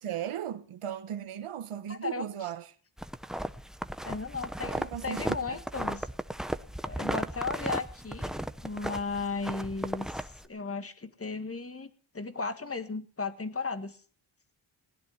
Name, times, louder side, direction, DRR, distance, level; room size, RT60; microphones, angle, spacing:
voice 1, 0.0-2.6 4.6-5.2 5.5-5.6, right 10 dB, 90° right, 1.4 m, -37 dB
voice 2, 1.9-2.5 4.0-6.1 6.8-8.4 8.6-14.0, left 4 dB, 25° left, 1.8 m, -36 dB
sound 1, 3.0-10.5, equal, ahead, 0.8 m, -35 dB
19.0 x 11.0 x 5.8 m
cardioid pair, 80°, 49 cm